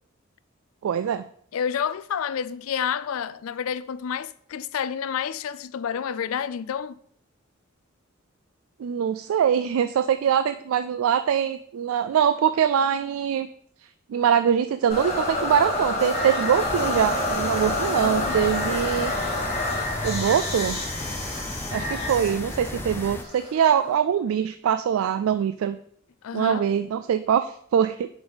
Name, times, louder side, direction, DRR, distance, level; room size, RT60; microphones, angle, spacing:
voice 1, 0.8-1.2 8.8-13.5 14.1-19.1 20.0-20.8 21.7-25.8 26.3-28.1, right 8 dB, 85° right, 0.3 m, -23 dB
voice 2, 1.5-7.0 17.8-18.6 26.2-26.7, left 8 dB, 85° left, 0.4 m, -29 dB
sound 1, 14.9-23.9, left 1 dB, 30° left, 2.5 m, -28 dB
sound 2, 16.6-23.2, left 1 dB, 10° left, 0.4 m, -35 dB
7.0 x 5.2 x 4.0 m
head